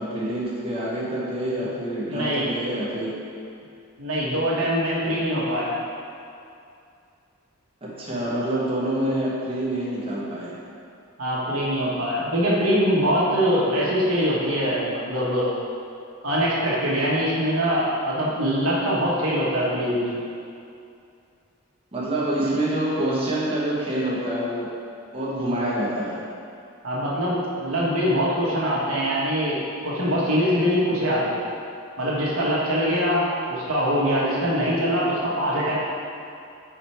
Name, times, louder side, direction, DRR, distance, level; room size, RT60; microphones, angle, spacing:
voice 1, 0.0-3.3 7.8-10.6 21.9-24.7 25.1-26.2, right 1 dB, 25° right, -7 dB, 0.9 m, -26 dB
voice 2, 2.1-2.5 4.0-5.8 11.2-15.5 16.2-20.1 26.8-31.4 32.0-35.8, equal, 80° right, -6 dB, 1.3 m, -23 dB
4.8 x 4.5 x 4.4 m, 2.5 s
head